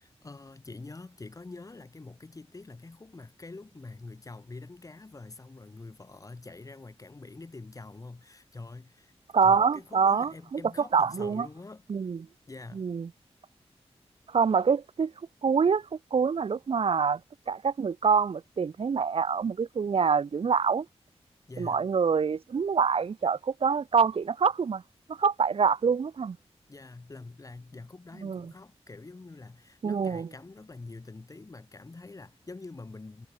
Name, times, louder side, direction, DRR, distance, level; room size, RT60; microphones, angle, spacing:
voice 1, 0.0-9.1 9.4-11.8 12.5-12.9 21.5-21.9 26.7-33.3, left 3 dB, 30° left, 3.6 m, -45 dB
voice 2, 9.3-10.6 10.9-11.5 11.9-12.3 12.7-13.1 14.3-15.1 15.4-17.2 17.5-20.9 21.6-24.8 25.1-26.4 28.2-28.5 29.8-30.3, right 6 dB, 60° right, 1.0 m, -25 dB
wide cardioid pair, 120°, 11 cm